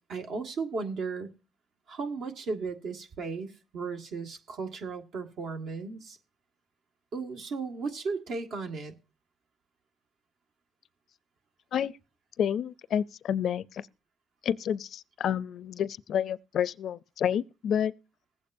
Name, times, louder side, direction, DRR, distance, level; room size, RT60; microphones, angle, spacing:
voice 1, 0.1-1.3 1.9-6.2 7.1-8.9, right 4 dB, 75° right, 1.7 m, -35 dB
voice 2, 12.4-13.8 14.4-17.9, left 9 dB, 70° left, 0.4 m, -29 dB
20.5 x 8.4 x 2.6 m
cardioid pair, 90°, 0 cm